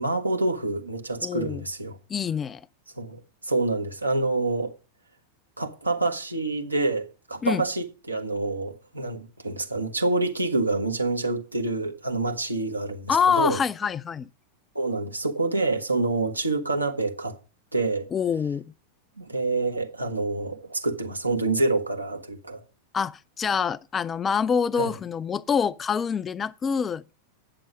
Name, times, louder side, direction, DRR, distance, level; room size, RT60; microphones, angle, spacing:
voice 1, 0.0-2.0 3.0-4.7 5.6-13.6 14.7-17.4 17.7-18.1 19.2-22.6 24.8-24.9, right 2 dB, 85° right, 1.4 m, -27 dB
voice 2, 1.2-1.6 2.1-2.7 7.4-7.6 13.1-14.3 18.1-18.6 22.9-27.1, left 6 dB, 20° left, 0.4 m, -26 dB
9.0 x 6.8 x 6.2 m
figure-of-eight pair, 90°, 0 cm